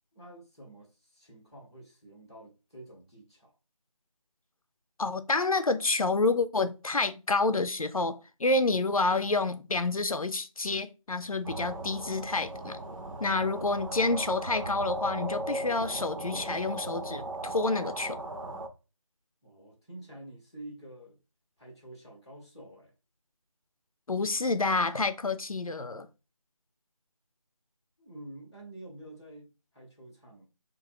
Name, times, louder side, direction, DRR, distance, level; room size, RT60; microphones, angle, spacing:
voice 1, 0.1-3.5 19.4-21.2 21.6-22.9 28.0-30.5, right 1 dB, 10° left, 0.6 m, -48 dB
voice 2, 5.0-12.8 13.2-18.2 24.1-26.1, left 3 dB, 85° left, 0.6 m, -28 dB
sound 1, 11.4-18.7, right 1 dB, 70° right, 0.9 m, -37 dB
3.8 x 2.6 x 4.6 m
figure-of-eight pair, 165°, 18 cm